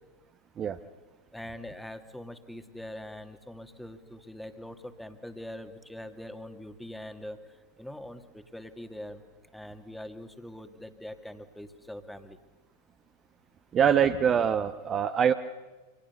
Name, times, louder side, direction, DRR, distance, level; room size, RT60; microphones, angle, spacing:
voice 1, 1.3-9.2 9.5-12.4, left 1 dB, ahead, 8 dB, 2.1 m, -43 dB
voice 2, 13.7-15.3, right 8 dB, 25° right, 8 dB, 1.1 m, -24 dB
29.5 x 26.5 x 6.9 m, 1.2 s
figure-of-eight pair, 90°, 0 cm